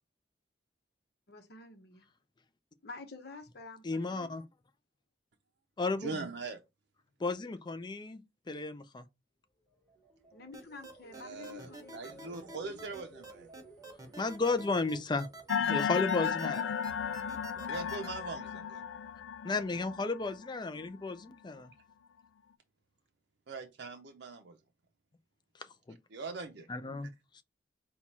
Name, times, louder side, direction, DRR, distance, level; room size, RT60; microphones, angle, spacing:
voice 1, 1.3-2.1 2.8-4.3 10.3-12.3, left 3 dB, 60° left, 1.0 m, -49 dB
voice 2, 3.8-4.5 5.8-6.2 7.2-8.2 8.5-9.0 14.2-15.3 15.7-16.7 19.4-21.7 25.9-26.0 26.7-27.4, left 3 dB, 25° left, 0.5 m, -33 dB
voice 3, 6.0-6.6 11.1-13.5 17.6-18.8 23.5-24.6 26.1-26.7, right 3 dB, 65° right, 0.5 m, -41 dB
sound 1, 9.6-16.8 17.2-17.6, right 2 dB, 5° left, 1.3 m, -57 dB
sound 2, 10.5-18.1, right 2 dB, 20° right, 0.9 m, -48 dB
sound 3, 15.5-21.1, left 7 dB, 85° left, 0.3 m, -34 dB
4.4 x 2.3 x 4.2 m
head